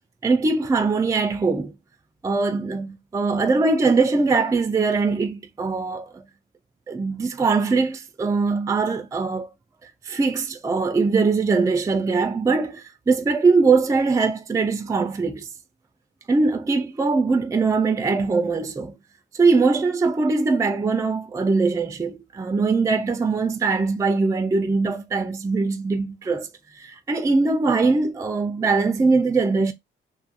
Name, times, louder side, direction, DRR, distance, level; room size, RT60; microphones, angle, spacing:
voice 1, 0.2-1.7 2.2-6.2 6.9-9.5 10.1-15.5 16.3-18.9 19.3-26.5 26.8-29.7, right 4 dB, 15° right, 0.4 m, -21 dB
2.5 x 2.4 x 2.5 m
cardioid pair, 90°, 20 cm